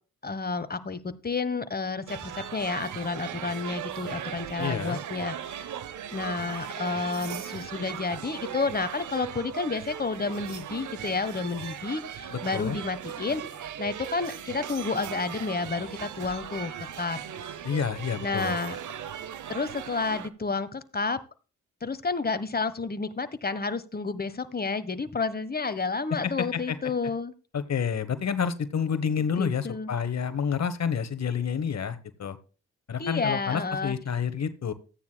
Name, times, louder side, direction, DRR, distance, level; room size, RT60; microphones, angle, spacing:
voice 1, 0.2-5.7 6.1-13.4 13.8-16.7 17.0-17.2 18.2-18.8 19.5-21.2 21.8-27.3 29.4-29.9 33.0-33.9, left 4 dB, 30° left, 12 dB, 1.3 m, -30 dB
sound 1, 2.1-20.3, right 9 dB, 80° right, 0.8 m, -38 dB
voice 2, 4.6-5.0 12.3-12.8 17.6-18.6 26.1-26.8 27.5-32.4 32.9-34.7, left 7 dB, 60° left, 12 dB, 1.2 m, -29 dB
14.5 x 9.5 x 2.3 m, 0.36 s
cardioid pair, 60°, 30 cm